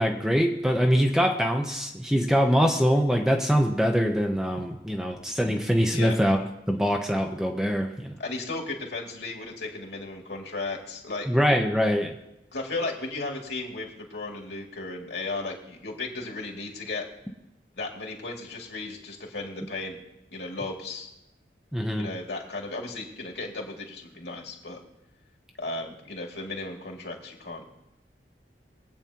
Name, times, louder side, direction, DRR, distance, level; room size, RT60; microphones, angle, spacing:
voice 1, 0.0-6.4 6.7-8.2 11.3-12.1 21.7-22.1, equal, 5° right, 2 dB, 0.8 m, -23 dB
voice 2, 8.2-11.3 12.5-17.1 17.8-20.0 20.3-21.1 21.9-24.8 25.6-27.7, left 3 dB, 75° left, -1 dB, 2.5 m, -35 dB
23.0 x 8.9 x 2.9 m, 0.89 s
head